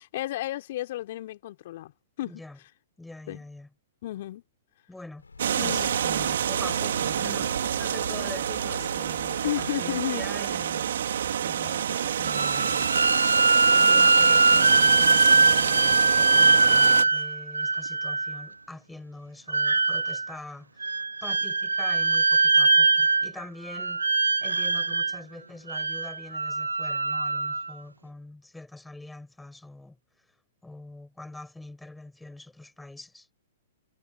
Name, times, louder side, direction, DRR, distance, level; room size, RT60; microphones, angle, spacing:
voice 1, 0.0-1.9 2.2-2.4 3.3-3.4 4.0-4.4 5.6-6.0 9.4-10.6, left 14 dB, 55° left, 3.4 m, -33 dB
voice 2, 2.2-2.6 3.0-3.7 4.9-5.3 5.6-10.9 11.4-12.9 13.7-24.1 24.4-30.0 30.6-33.3, left 2 dB, 5° left, 5.2 m, -44 dB
sound 1, 5.2-15.7, left 4 dB, 80° left, 5.8 m, -45 dB
sound 2, 5.4-17.0, right 9 dB, 65° right, 3.3 m, -28 dB
sound 3, 12.2-18.4 19.5-20.3 20.8-23.4 23.7-25.2 25.7-27.7, right 3 dB, 85° right, 0.8 m, -22 dB
figure-of-eight pair, 110°, 0 cm